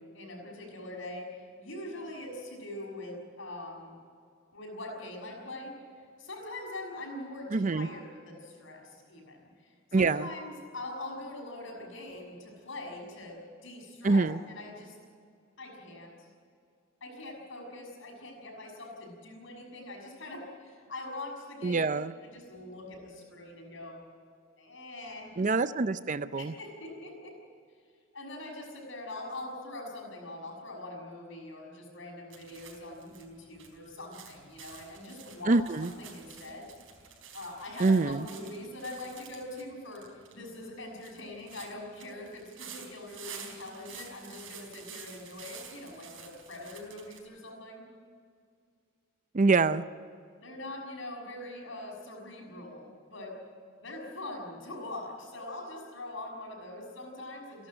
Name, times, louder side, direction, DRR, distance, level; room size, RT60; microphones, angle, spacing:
voice 1, 0.0-4.0 4.5-14.9 15.6-16.3 17.0-21.8 22.2-24.0 24.6-25.4 26.4-27.4 28.1-36.7 37.3-47.8 50.4-53.4 53.8-57.7, left 2 dB, 65° left, 1 dB, 6.3 m, -43 dB
voice 2, 7.5-7.9 9.9-10.3 14.0-14.4 21.6-22.1 25.4-26.5 35.5-35.9 37.8-38.3 49.3-49.8, right 3 dB, 40° right, 14 dB, 0.5 m, -25 dB
sound 1, 32.3-47.2, right 7 dB, 70° right, 4.3 m, -50 dB
29.5 x 11.5 x 8.9 m, 2.3 s
head